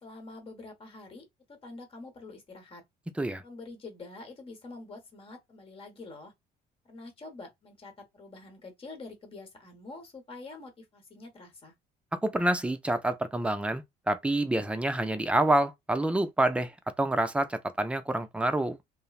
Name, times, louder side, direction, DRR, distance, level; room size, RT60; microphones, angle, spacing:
voice 1, 0.0-2.8 3.4-6.3 6.8-11.7, left 3 dB, 35° left, 1.0 m, -46 dB
voice 2, 12.2-16.7 17.0-18.8, right 1 dB, 5° right, 0.4 m, -27 dB
2.9 x 2.0 x 2.3 m
cardioid pair, 110°, 17 cm